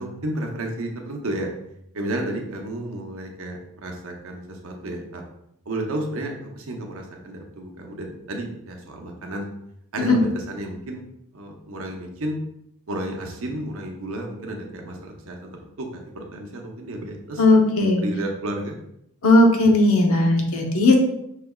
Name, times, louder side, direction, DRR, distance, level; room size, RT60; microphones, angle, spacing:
voice 1, 0.0-1.5 1.9-5.2 5.7-9.5 9.9-11.0 11.3-12.4 12.9-17.6 18.0-18.8, right 1 dB, 65° right, 2 dB, 0.7 m, -32 dB
voice 2, 17.4-18.0 19.2-21.0, left 2 dB, 70° left, 2 dB, 0.8 m, -17 dB
5.7 x 3.3 x 2.3 m, 0.78 s
head